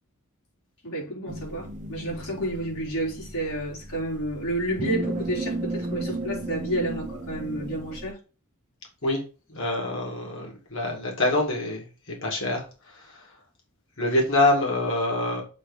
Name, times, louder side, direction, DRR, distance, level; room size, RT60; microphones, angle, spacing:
voice 1, 0.8-8.2, right 1 dB, 85° left, 4.0 m, -30 dB
sound 1, 1.3-8.1, right 2 dB, 35° right, 0.7 m, -34 dB
voice 2, 9.5-13.3 14.0-15.4, left 2 dB, 60° left, 2.2 m, -26 dB
7.4 x 3.2 x 5.2 m
head